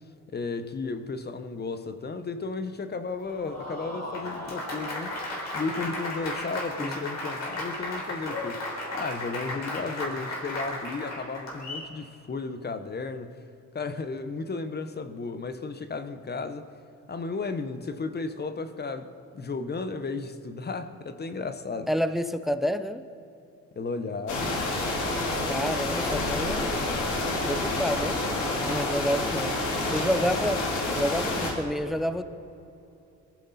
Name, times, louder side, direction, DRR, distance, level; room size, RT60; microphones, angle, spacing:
voice 1, 0.3-5.2 5.5-8.6 8.9-13.4 13.7-16.7 17.1-21.9 23.7-24.5, left 4 dB, 35° left, 1.1 m, -34 dB
Applause, 3.2-11.9, left 1 dB, 60° left, 4.2 m, -35 dB
voice 2, 21.9-23.0 25.5-26.7 27.4-28.2 28.6-29.5 29.9-30.6 31.0-32.2, equal, ahead, 0.7 m, -29 dB
sound 1, 24.3-31.5, left 2 dB, 80° left, 3.1 m, -28 dB
22.5 x 14.5 x 4.2 m
cardioid pair, 90°, 30 cm